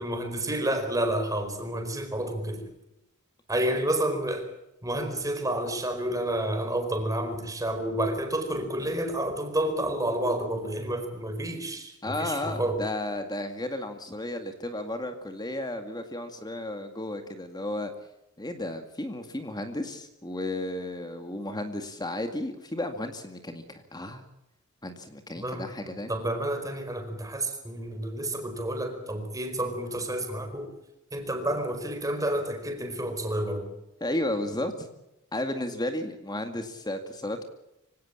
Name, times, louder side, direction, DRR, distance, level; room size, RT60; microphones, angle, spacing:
voice 1, 0.0-2.7 3.5-4.5 4.8-12.8 25.4-30.7 31.1-33.7, right 1 dB, 15° right, 6 dB, 4.6 m, -30 dB
voice 2, 12.0-17.9 18.4-24.3 24.8-26.1 34.0-34.9 35.3-37.4, left 1 dB, 20° left, 7 dB, 2.1 m, -33 dB
25.5 x 17.5 x 8.7 m, 0.87 s
head